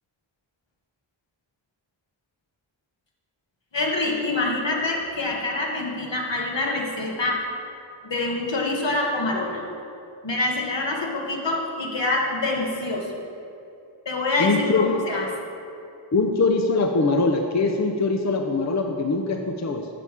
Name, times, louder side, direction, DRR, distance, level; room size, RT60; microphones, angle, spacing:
voice 1, 3.7-7.5 8.0-9.6 10.2-13.1 14.0-15.2, left 2 dB, 60° left, -1 dB, 1.3 m, -26 dB
voice 2, 14.4-15.0 16.1-19.9, left 3 dB, 35° left, 4 dB, 0.5 m, -22 dB
6.8 x 5.7 x 4.8 m, 2.7 s
wide cardioid pair, 55°, 48 cm